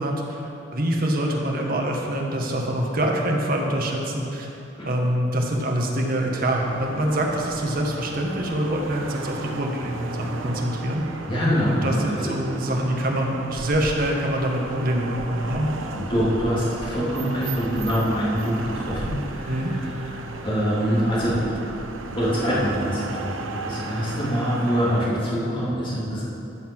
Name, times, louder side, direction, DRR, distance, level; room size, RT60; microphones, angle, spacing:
voice 1, 0.0-4.5 4.8-11.0 11.7-15.7 19.5-19.7, right 1 dB, 45° right, 0 dB, 1.3 m, -25 dB
sound 1, 6.6-25.1, right 3 dB, 80° right, 0.7 m, -35 dB
voice 2, 11.3-12.3 16.0-21.8 22.1-26.2, equal, 25° left, -7 dB, 2.6 m, -25 dB
13.5 x 5.8 x 6.1 m, 2.9 s
head